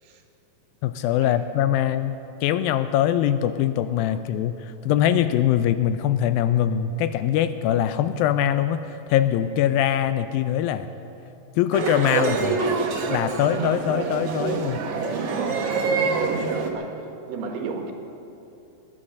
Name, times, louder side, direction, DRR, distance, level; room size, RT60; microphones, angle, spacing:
voice 1, 0.8-8.8 9.1-10.9 11.6-12.5 13.1-14.9, left 11 dB, 80° left, 11 dB, 2.2 m, -22 dB
sound 1, 11.7-16.7, right 4 dB, 65° right, 1.6 m, -25 dB
voice 2, 12.1-12.6 16.7-17.9, right 4 dB, 85° right, 3 dB, 3.4 m, -35 dB
21.0 x 10.0 x 6.5 m, 2.8 s
omnidirectional pair, 4.4 m